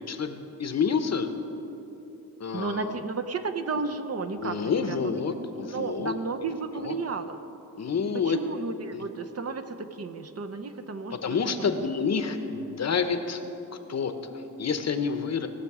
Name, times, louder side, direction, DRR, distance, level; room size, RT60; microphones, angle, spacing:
voice 1, 0.1-1.3 2.4-3.0 4.4-5.3 5.6-6.1 6.8-6.9 7.8-8.4 8.9-9.1 11.1-13.4 13.9-15.5, left 6 dB, 45° left, 8 dB, 0.8 m, -28 dB
voice 2, 2.5-4.6 4.9-5.3 5.6-7.4 8.1-11.2 11.6-11.9, right 4 dB, 45° right, 7 dB, 0.6 m, -33 dB
17.0 x 6.3 x 4.8 m, 3.0 s
cardioid pair, 90°, 35 cm